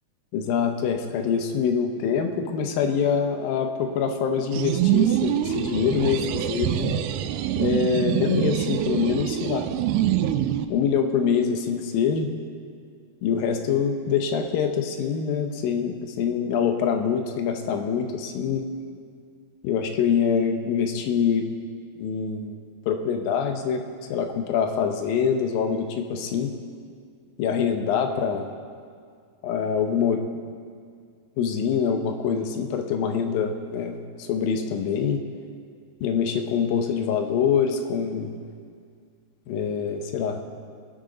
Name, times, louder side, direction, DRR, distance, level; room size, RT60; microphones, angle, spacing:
voice 1, 0.3-7.0 7.5-9.7 10.7-12.3 13.2-18.6 19.6-21.5 22.0-23.8 24.1-26.5 27.4-28.5 29.4-30.2 31.4-35.2 36.0-38.3 39.5-40.4, left 7 dB, 75° left, 5 dB, 2.3 m, -25 dB
sound 1, 4.5-10.6, right 12 dB, 80° right, 2.4 m, -25 dB
20.5 x 11.5 x 3.9 m, 2.1 s
omnidirectional pair, 4.8 m